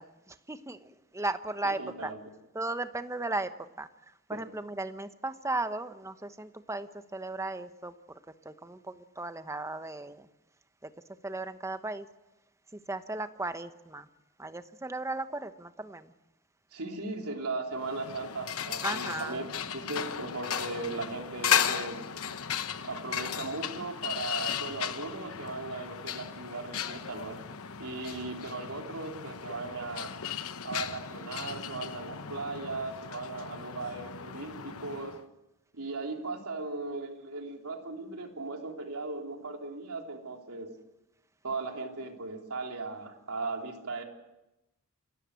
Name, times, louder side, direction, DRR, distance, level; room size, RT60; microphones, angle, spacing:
voice 1, 0.0-2.1 2.5-10.3 10.8-10.9 11.2-12.1 12.7-14.1 14.4-16.1 18.8-19.5 28.2-28.3, right 2 dB, 15° right, 10 dB, 1.0 m, -36 dB
voice 2, 1.6-2.2 4.3-4.4 16.7-19.5 19.7-22.0 22.8-27.4 27.8-30.1 30.6-35.1 35.7-40.7 41.4-44.0, right 3 dB, 75° right, 2 dB, 3.5 m, -37 dB
sound 1, 17.8-35.2, left 8 dB, 70° left, 1.0 m, -35 dB
27.5 x 13.5 x 8.3 m, 0.95 s
head